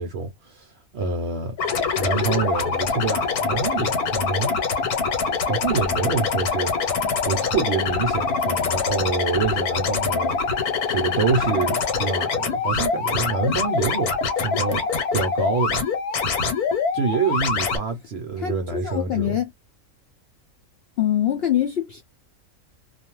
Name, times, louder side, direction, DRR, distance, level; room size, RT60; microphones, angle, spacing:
voice 1, 0.0-1.5 2.0-4.6 5.4-6.8 7.3-14.9 15.1-15.8 16.9-19.4, right 5 dB, 65° right, 0.6 m, -26 dB
sound 1, 1.6-17.8, left 5 dB, 90° left, 1.3 m, -24 dB
voice 2, 18.4-19.5 21.0-22.0, left 11 dB, 75° left, 0.5 m, -24 dB
2.5 x 2.2 x 2.9 m
omnidirectional pair, 1.5 m